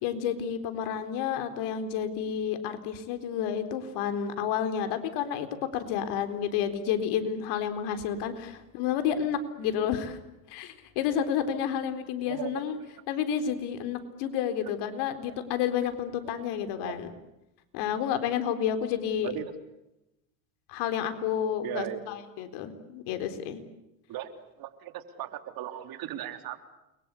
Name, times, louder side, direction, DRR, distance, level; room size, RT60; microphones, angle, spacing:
voice 1, 0.0-5.5 5.7-10.2 10.5-12.8 13.1-17.1 17.7-19.3 20.7-23.6, left 8 dB, 65° left, 9 dB, 4.1 m, -30 dB
voice 2, 12.2-12.9 16.8-16.9 19.2-19.5 21.6-22.0 24.1-24.3 24.6-26.6, right 12 dB, 55° right, 8 dB, 3.5 m, -37 dB
29.5 x 23.0 x 8.4 m, 0.93 s
supercardioid pair, 95°, 43 cm